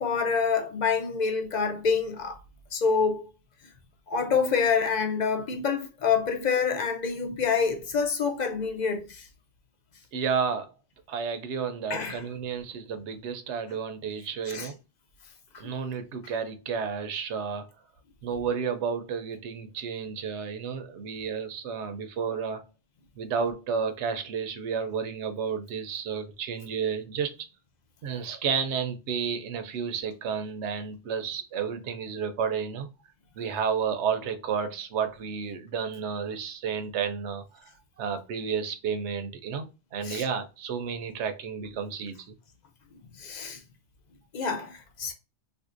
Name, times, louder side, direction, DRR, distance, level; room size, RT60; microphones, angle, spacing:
voice 1, 0.0-2.4 2.7-3.2 4.1-9.2 11.9-12.2 14.5-14.7 15.6-15.7 40.0-40.2 43.2-43.6 44.3-45.1, left 5 dB, 50° left, 0.6 m, -27 dB
voice 2, 10.1-10.7 11.1-14.7 15.6-17.7 18.2-22.6 23.2-27.5 28.0-32.9 33.4-37.6 38.0-39.7 39.9-42.4, right 6 dB, 75° right, 0.9 m, -31 dB
3.8 x 2.6 x 2.5 m
omnidirectional pair, 1.2 m